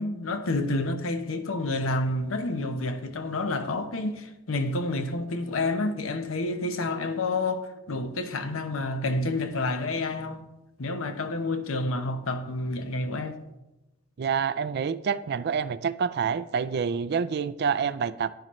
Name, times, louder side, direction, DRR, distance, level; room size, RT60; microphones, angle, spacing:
voice 1, 0.0-10.5 10.8-13.4, left 2 dB, 70° left, 0.8 m, -29 dB
voice 2, 14.2-18.3, right 6 dB, 50° right, 0.4 m, -27 dB
10.5 x 9.9 x 3.1 m
head